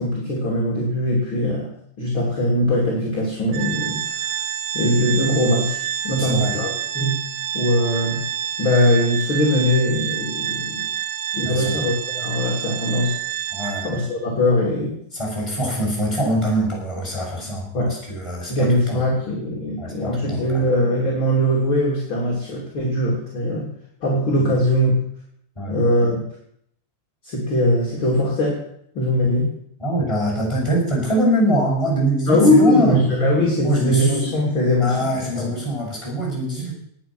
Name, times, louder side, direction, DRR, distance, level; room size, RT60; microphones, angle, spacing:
voice 1, 0.0-4.2 4.7-7.3 7.5-8.2 8.6-10.9 11.3-13.2 13.8-15.0 17.7-18.0 18.5-23.7 24.0-24.9 25.7-26.2 27.2-28.6 29.0-29.6 32.3-35.1 35.3-35.6, left 1 dB, 35° left, -3 dB, 3.8 m, -21 dB
Organ, 3.5-14.2, right 10 dB, 75° right, 2.5 m, -28 dB
voice 2, 6.1-6.6 11.4-11.8 13.5-13.9 14.3-14.4 15.1-17.7 18.1-19.0 19.8-20.6 24.4-24.5 25.5-25.7 29.8-33.0 33.6-34.2 34.8-36.7, right 1 dB, 10° left, -4 dB, 6.8 m, -23 dB
19.0 x 9.6 x 6.2 m, 0.70 s
omnidirectional pair, 3.8 m